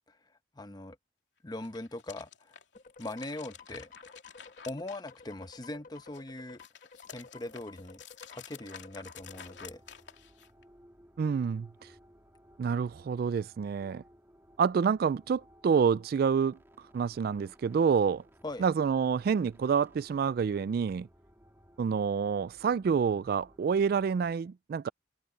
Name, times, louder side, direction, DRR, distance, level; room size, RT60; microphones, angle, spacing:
voice 1, 0.5-1.0 1.4-2.6 3.0-3.9 4.7-6.6 7.1-8.0 8.3-9.8 18.4-18.6, left 2 dB, 25° left, 1.0 m, -41 dB
sound 1, 1.5-5.6 6.0-10.6, left 8 dB, 80° left, 3.0 m, -51 dB
sound 2, 2.7-9.6, left 4 dB, 50° left, 1.3 m, -53 dB
sound 3, 9.2-24.4, equal, 15° right, 2.2 m, -60 dB
voice 2, 11.2-11.7 12.6-14.0 14.6-16.6 16.9-18.2 18.6-21.1 21.8-24.9, right 6 dB, 55° right, 0.3 m, -28 dB
head